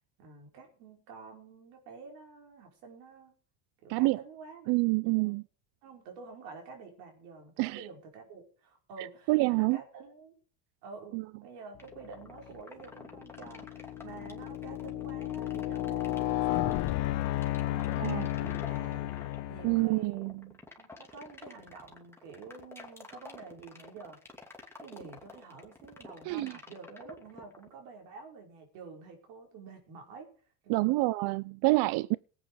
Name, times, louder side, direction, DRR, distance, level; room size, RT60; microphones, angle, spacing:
voice 1, 0.2-3.3 3.8-4.7 5.0-5.4 5.8-10.3 10.8-16.8 17.6-19.1 19.5-20.3 20.8-24.2 24.8-30.3 30.6-31.0, right 4 dB, 85° right, 5.3 m, -49 dB
voice 2, 4.7-5.4 7.6-7.8 9.3-9.8 11.1-11.2 18.0-18.3 19.6-20.3 26.3-26.5 30.7-32.2, right 22 dB, 60° right, 0.6 m, -27 dB
sound 1, 11.8-27.7, left 2 dB, 5° left, 2.7 m, -49 dB
sound 2, 12.3-12.6 13.2-20.0, left 15 dB, 60° left, 1.2 m, -33 dB
18.0 x 9.0 x 4.9 m
supercardioid pair, 105°, 46 cm